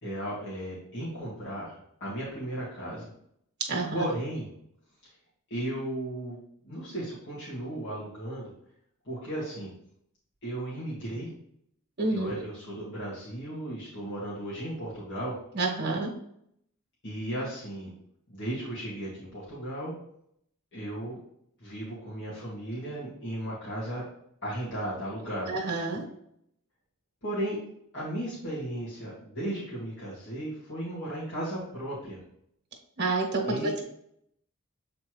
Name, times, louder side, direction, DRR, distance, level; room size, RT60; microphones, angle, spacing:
voice 1, 0.0-3.1 3.9-4.5 5.0-5.1 5.5-8.5 9.0-9.7 10.4-11.3 12.1-15.4 17.0-17.9 18.3-19.9 20.7-21.2 21.6-24.1 24.4-25.6 27.2-27.6 27.9-32.2 33.5-33.7, right 1 dB, 60° left, -9 dB, 2.0 m, -35 dB
voice 2, 3.7-4.0 12.0-12.3 15.5-16.1 25.5-26.0 33.0-33.8, right 3 dB, 50° right, 1 dB, 1.3 m, -28 dB
7.5 x 4.1 x 3.2 m, 0.72 s
head